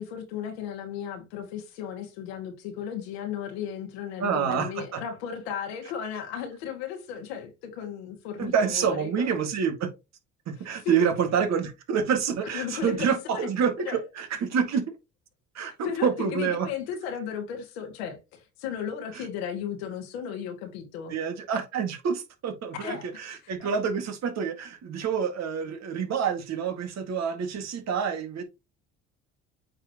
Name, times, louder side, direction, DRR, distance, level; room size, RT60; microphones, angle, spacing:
voice 1, 0.0-9.3 10.8-11.1 12.5-13.5 13.9-14.0 15.6-21.2 22.8-23.1, left 8 dB, 90° left, 2.1 m, -35 dB
voice 2, 4.2-5.0 8.4-9.9 10.5-14.8 15.5-16.7 19.1-19.2 21.1-28.4, right 7 dB, 60° right, 2.0 m, -27 dB
8.7 x 4.2 x 3.0 m
supercardioid pair, 70°, 31 cm